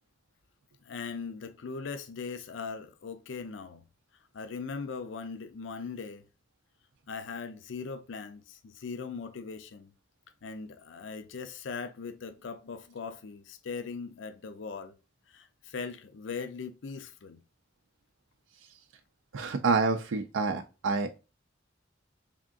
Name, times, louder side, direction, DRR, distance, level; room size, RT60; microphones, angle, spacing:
voice 1, 0.8-3.8 4.3-6.2 7.1-9.9 10.4-14.9 15.3-17.4, left 5 dB, 70° left, 0.5 m, -40 dB
voice 2, 19.3-21.2, right 4 dB, 85° right, 0.4 m, -28 dB
3.6 x 3.5 x 2.4 m
head